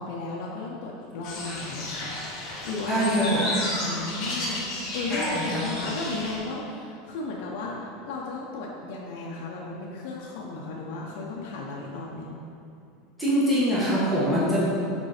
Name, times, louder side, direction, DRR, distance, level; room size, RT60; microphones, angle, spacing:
voice 1, 0.0-3.0 3.7-12.4, left 3 dB, 55° left, -3 dB, 0.6 m, -35 dB
sound 1, 1.2-6.4, left 1 dB, 35° left, 1.2 m, -33 dB
voice 2, 2.9-3.5 5.1-5.6 13.2-14.6, equal, ahead, -10 dB, 1.1 m, -24 dB
5.2 x 4.2 x 4.8 m, 2.5 s
supercardioid pair, 175°, 0 cm